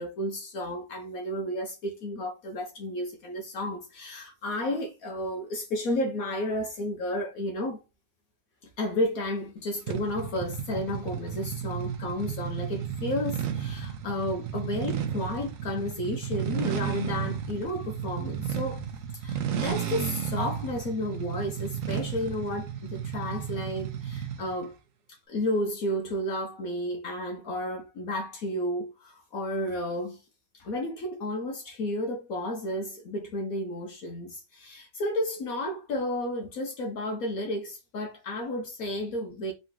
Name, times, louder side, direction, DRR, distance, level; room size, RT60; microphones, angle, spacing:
voice 1, 0.0-7.8 8.8-18.8 19.1-24.7 25.3-30.2 30.5-39.5, left 1 dB, 65° left, 1.2 m, -32 dB
sound 1, 9.9-24.5, right 9 dB, 65° right, 1.0 m, -33 dB
3.8 x 2.8 x 3.6 m
omnidirectional pair, 1.7 m